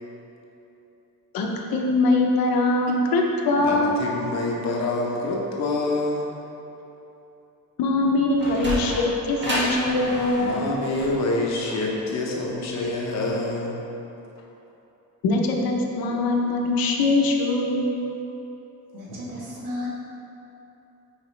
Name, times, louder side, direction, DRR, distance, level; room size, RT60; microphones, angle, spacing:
voice 1, 1.3-4.0 7.8-10.6 15.2-17.9, left 2 dB, 80° left, 1 dB, 0.8 m, -22 dB
voice 2, 3.6-6.3 10.4-13.8, left 2 dB, 50° left, -2 dB, 0.9 m, -26 dB
Sliding door, 8.1-13.3, equal, 30° right, 1.4 m, -31 dB
voice 3, 18.9-19.9, left 1 dB, 60° right, -5 dB, 1.4 m, -33 dB
6.7 x 4.9 x 3.2 m, 3.0 s
cardioid pair, 175°, 35 cm